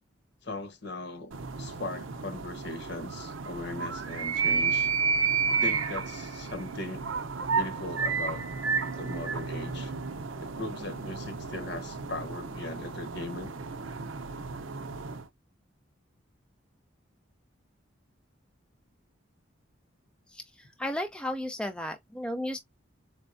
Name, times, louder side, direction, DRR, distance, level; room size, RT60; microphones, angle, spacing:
voice 1, 0.4-1.3 1.6-4.9 5.5-7.1 7.5-8.4 9.0-9.9 10.4-13.6, left 2 dB, 60° left, 1.0 m, -39 dB
sound 1, 1.3-15.3, right 5 dB, 80° right, 0.6 m, -32 dB
voice 2, 20.8-22.6, left 1 dB, 5° left, 0.5 m, -33 dB
4.5 x 2.2 x 2.5 m
head